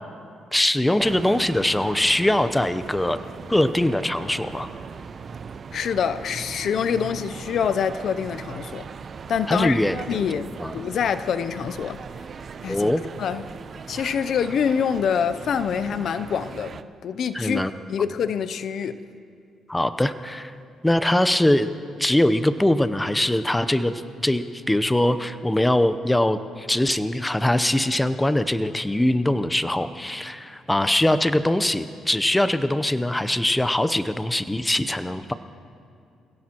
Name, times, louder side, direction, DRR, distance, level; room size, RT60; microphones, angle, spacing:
voice 1, 0.5-3.2 3.5-4.7 9.5-10.0 10.6-10.7 12.7-13.0 17.3-17.7 19.7-20.5 20.8-21.7 22.0-23.9 24.2-35.3, left 1 dB, 10° left, 0.7 m, -22 dB
sound 1, 1.0-16.8, right 5 dB, 45° right, 0.7 m, -39 dB
voice 2, 5.7-8.9 9.3-9.8 10.1-12.0 12.6-12.9 13.2-13.5 13.9-17.6 17.9-19.0, left 7 dB, 65° left, 0.5 m, -25 dB
28.5 x 17.0 x 3.0 m
cardioid pair, 90°, 0 cm